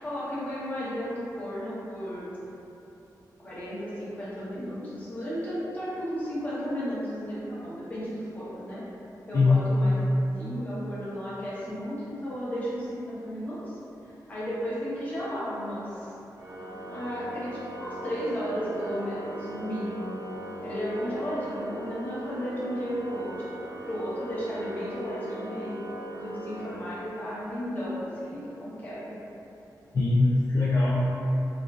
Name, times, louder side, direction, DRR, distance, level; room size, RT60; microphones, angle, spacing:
voice 1, 0.0-2.3 3.4-8.8 9.3-10.1 10.4-13.8 14.3-16.1 16.8-20.2 20.6-23.3 23.9-25.8 26.2-29.1, equal, 25° left, -10 dB, 0.9 m, -34 dB
voice 2, 9.3-9.7 29.9-31.1, left 3 dB, 45° left, -8 dB, 0.4 m, -22 dB
Organ, 16.4-27.3, right 1 dB, 65° right, 0.5 m, -39 dB
3.5 x 2.4 x 2.4 m, 3.0 s
wide cardioid pair, 145°, 7 cm